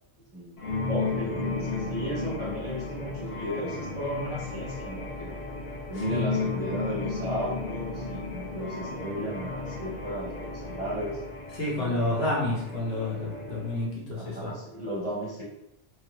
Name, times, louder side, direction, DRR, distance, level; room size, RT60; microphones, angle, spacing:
voice 1, 0.3-5.4 5.9-11.2 11.8-12.2 13.1-13.2 14.2-15.4, equal, 35° right, -6 dB, 0.8 m, -35 dB
sound 1, 0.6-13.8, left 3 dB, 45° left, 0.7 m, -34 dB
voice 2, 11.5-14.5, left 2 dB, 60° left, -4 dB, 1.1 m, -29 dB
3.2 x 2.0 x 3.0 m, 0.88 s
omnidirectional pair, 1.2 m